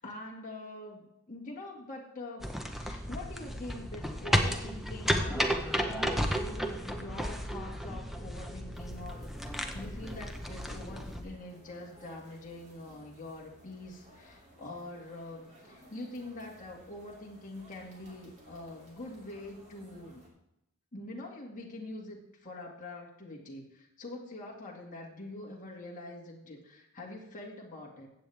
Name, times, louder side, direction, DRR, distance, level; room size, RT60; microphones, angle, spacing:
voice 1, 0.0-2.5 2.8-20.2 20.9-28.1, left 2 dB, 35° left, -2 dB, 2.0 m, -44 dB
sound 1, 2.4-11.2, equal, ahead, 0.8 m, -33 dB
sound 2, 8.7-20.3, equal, 30° right, 2.7 m, -58 dB
15.0 x 8.6 x 3.4 m, 0.86 s
head